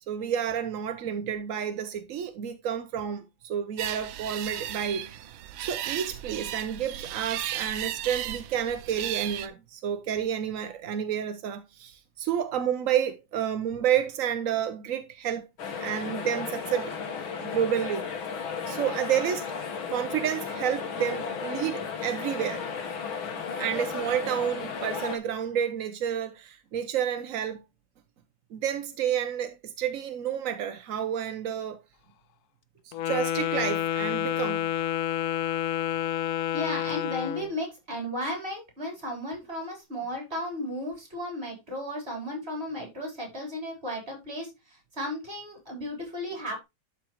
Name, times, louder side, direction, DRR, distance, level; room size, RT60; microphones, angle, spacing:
voice 1, 0.1-5.1 5.6-15.5 15.8-17.0 17.4-18.1 18.7-19.5 19.9-22.6 23.6-27.6 28.5-31.8 32.8-34.7, right 9 dB, 60° right, 0.9 m, -30 dB
sound 1, 3.8-9.5, right 12 dB, 80° right, 1.4 m, -35 dB
sound 2, 15.6-25.2, left 6 dB, 90° left, 2.2 m, -34 dB
Wind instrument woodwind instrument, 32.9-37.5, left 11 dB, 75° left, 0.9 m, -29 dB
voice 2, 36.5-46.6, left 1 dB, 30° right, 4.4 m, -34 dB
12.0 x 4.9 x 3.0 m
omnidirectional pair, 2.2 m